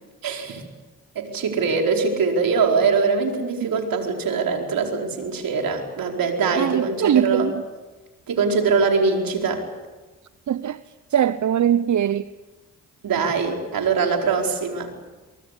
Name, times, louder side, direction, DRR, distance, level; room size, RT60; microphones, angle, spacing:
voice 1, 0.2-0.6 1.1-7.5 8.3-9.6 13.0-14.9, right 5 dB, 70° right, 4.7 m, -22 dB
voice 2, 6.6-7.6 10.5-10.8 11.1-12.3, right 9 dB, 55° right, 0.8 m, -21 dB
23.5 x 23.5 x 8.4 m
supercardioid pair, 50°, 35 cm